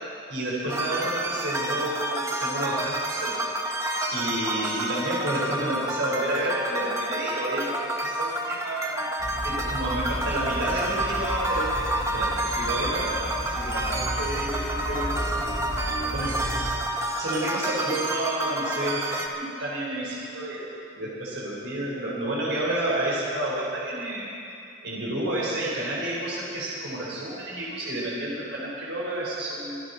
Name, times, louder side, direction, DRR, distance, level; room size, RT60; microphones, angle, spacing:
voice 1, 0.3-3.4 4.1-9.1 9.4-15.5 16.1-16.5 17.2-20.7 20.9-24.3 24.8-29.8, right 1 dB, 70° right, -6 dB, 3.8 m, -30 dB
sound 1, 0.7-19.3, right 1 dB, 15° right, 0.9 m, -29 dB
sound 2, 9.2-16.7, equal, 20° left, 4.7 m, -32 dB
25.0 x 12.0 x 4.0 m, 2.7 s
head